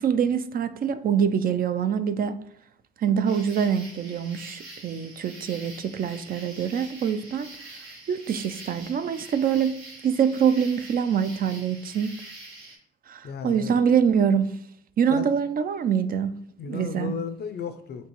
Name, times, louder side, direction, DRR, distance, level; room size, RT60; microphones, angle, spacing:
voice 1, 0.0-2.4 3.0-7.5 8.1-12.2 13.1-14.5 15.0-16.3 16.7-17.1, right 7 dB, 45° right, 0.4 m, -24 dB
sound 1, 3.2-12.8, right 2 dB, 85° right, 1.6 m, -45 dB
voice 2, 13.2-13.8 15.1-15.3 16.6-18.1, left 6 dB, 55° left, 0.5 m, -34 dB
4.3 x 2.9 x 3.0 m
cardioid pair, 90°, 20 cm